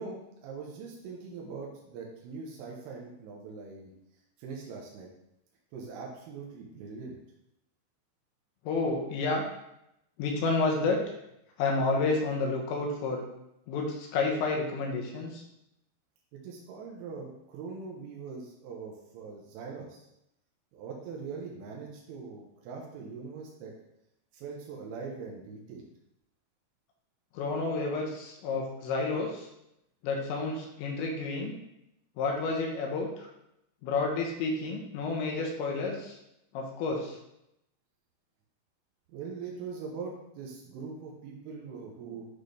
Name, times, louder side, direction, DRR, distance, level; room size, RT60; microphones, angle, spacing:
voice 1, 0.0-3.9 4.4-5.1 5.7-7.2 16.3-20.0 20.7-23.7 24.3-25.9 39.1-42.3, right 5 dB, 85° right, -1 dB, 3.5 m, -42 dB
voice 2, 8.6-9.4 10.2-11.0 11.6-13.2 13.7-15.4 27.3-29.5 30.0-31.5 32.2-33.3 33.8-36.2 36.5-37.2, left 3 dB, 75° left, 1 dB, 3.1 m, -30 dB
9.7 x 4.2 x 3.3 m, 0.83 s
omnidirectional pair, 5.6 m